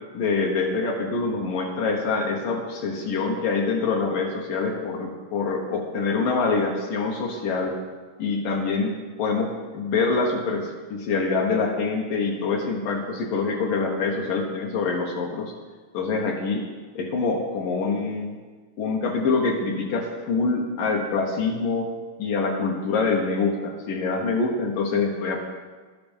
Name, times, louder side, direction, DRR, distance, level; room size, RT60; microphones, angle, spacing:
voice 1, 0.1-7.8 8.2-15.5 15.9-16.7 17.0-18.4 18.8-21.9 22.2-25.4, left 4 dB, 65° left, 1 dB, 2.5 m, -25 dB
12.0 x 10.5 x 5.3 m, 1.4 s
omnidirectional pair, 4.5 m